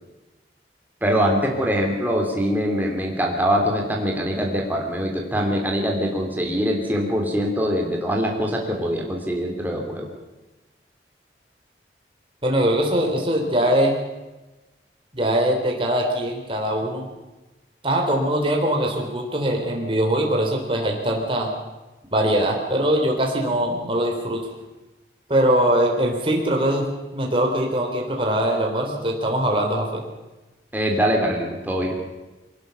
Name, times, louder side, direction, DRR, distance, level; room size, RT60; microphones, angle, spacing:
voice 1, 1.0-10.1 30.7-32.0, equal, 10° right, 0 dB, 3.2 m, -23 dB
voice 2, 12.4-13.9 15.1-17.1 17.8-21.5 22.1-24.4 25.3-26.9 27.1-30.0, right 1 dB, 30° right, 0 dB, 3.5 m, -22 dB
23.0 x 19.0 x 7.0 m, 1.1 s
head